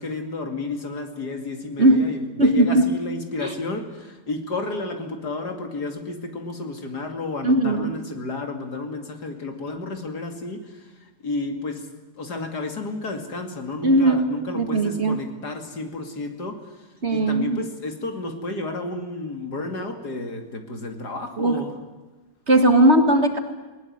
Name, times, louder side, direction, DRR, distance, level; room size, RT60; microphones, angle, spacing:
voice 1, 0.0-11.9 12.2-21.8, left 3 dB, 60° left, 5 dB, 3.1 m, -32 dB
voice 2, 2.4-2.9 7.4-7.9 13.8-14.2 14.5-15.2 17.0-17.6 21.4-21.6 22.5-23.4, right 1 dB, 40° right, 6 dB, 2.2 m, -18 dB
20.5 x 19.5 x 9.6 m, 1.2 s
omnidirectional pair, 1.9 m